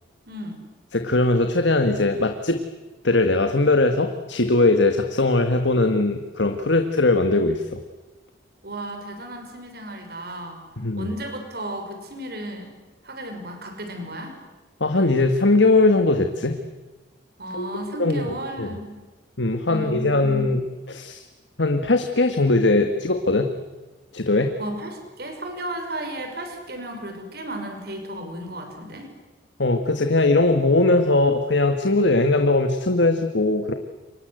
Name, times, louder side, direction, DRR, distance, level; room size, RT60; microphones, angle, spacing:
voice 1, 0.3-0.6 8.6-10.6 11.0-12.7 13.0-14.4 17.4-19.0 19.7-20.5 24.6-29.1, right 1 dB, 55° right, 5 dB, 6.0 m, -34 dB
voice 2, 0.9-2.6 3.0-7.8 10.8-11.1 14.8-16.6 17.5-17.7 18.0-18.2 18.6-18.7 19.4-20.6 20.9-21.2 21.6-23.5 24.1-24.5 29.6-33.7, left 2 dB, 70° left, 6 dB, 1.7 m, -20 dB
29.0 x 25.0 x 8.0 m, 1.2 s
head